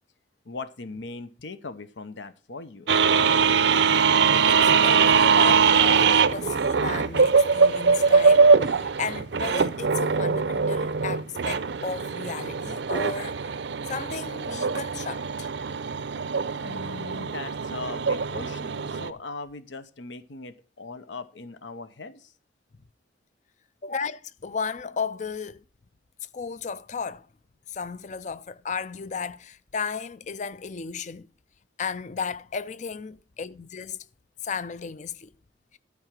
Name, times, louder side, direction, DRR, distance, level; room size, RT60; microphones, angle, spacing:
voice 1, 0.4-2.9 16.6-22.3, left 3 dB, 80° left, 0.8 m, -39 dB
sound 1, 2.9-19.1, right 5 dB, 70° right, 0.6 m, -22 dB
voice 2, 4.5-13.6 13.9-15.5 23.8-25.6 26.3-27.3 27.7-31.3 31.8-34.1 34.4-35.3, left 5 dB, 40° left, 0.5 m, -34 dB
12.0 x 4.8 x 7.4 m
head